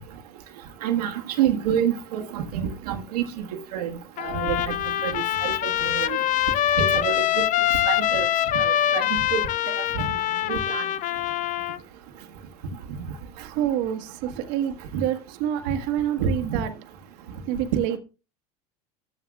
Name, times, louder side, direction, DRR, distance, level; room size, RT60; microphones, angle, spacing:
voice 1, 0.8-3.2 3.7-3.9 4.2-4.6 5.0-6.2 6.8-7.4 7.8-8.3 8.5-8.6 8.9-9.1 9.3-9.4 9.7-10.1 10.5-10.8 14.9-15.0 16.2-16.6, right 9 dB, 80° right, 1.4 m, -27 dB
Trumpet, 4.2-11.8, left 12 dB, 40° left, 0.5 m, -24 dB
voice 2, 13.3-16.7 17.5-18.0, right 11 dB, 60° right, 1.4 m, -27 dB
13.5 x 8.7 x 2.3 m
hypercardioid pair, 95°, 20 cm